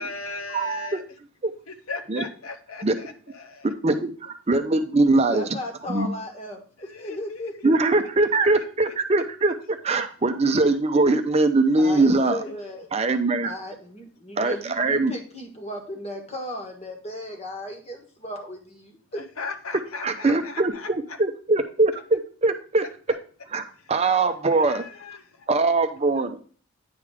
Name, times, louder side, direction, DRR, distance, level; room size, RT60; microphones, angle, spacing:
voice 1, 0.0-1.0 1.7-3.7 6.8-7.4 8.6-8.7 12.2-12.6 19.2-20.9 24.5-25.5 26.1-26.3, left 4 dB, 85° left, 7 dB, 0.9 m, -37 dB
voice 2, 0.5-0.9 1.4-1.5 2.1-2.2 2.8-2.9 3.8-5.4 5.9-6.1 7.6-12.4 12.9-13.5 14.4-15.1 20.0-22.8 23.5-24.8 25.5-26.4, right 3 dB, 30° right, 7 dB, 0.5 m, -22 dB
voice 3, 5.3-7.7 11.8-12.9 13.4-19.2, equal, 30° left, 3 dB, 1.4 m, -35 dB
9.5 x 3.5 x 4.8 m, 0.42 s
head